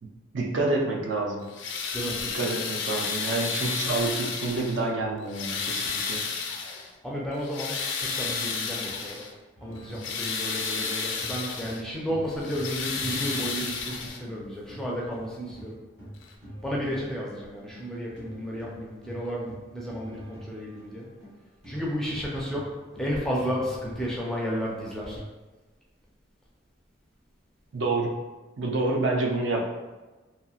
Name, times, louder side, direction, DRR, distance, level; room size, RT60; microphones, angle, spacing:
voice 1, 0.3-1.5 2.3-6.2 27.7-28.1 28.6-29.7, right 2 dB, 70° right, 0 dB, 0.5 m, -28 dB
sound 1, 1.4-4.9 5.3-6.9 7.3-9.3 9.8-11.8 12.3-14.4 15.5-15.6 16.2-16.3, left 5 dB, 70° left, 0.4 m, -32 dB
voice 2, 7.0-9.2 9.6-15.8 16.6-21.1 21.6-22.7 23.0-25.2, equal, 5° left, -4 dB, 0.4 m, -32 dB
sound 2, 9.6-14.4 14.7-25.2, equal, 35° right, 1.1 m, -46 dB
2.8 x 2.7 x 2.3 m, 1.2 s
head